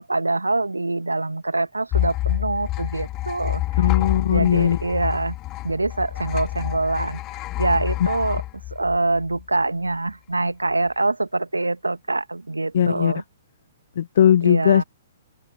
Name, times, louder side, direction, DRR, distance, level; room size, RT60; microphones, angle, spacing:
voice 1, 0.0-3.9 4.3-5.4 5.6-8.4 8.7-13.2 14.4-14.8, right 2 dB, 85° right, 1.8 m, -25 dB
sound 1, 1.9-9.4, left 17 dB, 25° left, 2.2 m, -27 dB
voice 2, 3.8-4.8 12.7-13.1 14.0-14.8, left 10 dB, 55° left, 1.3 m, -18 dB
open air
figure-of-eight pair, 120°, 0 cm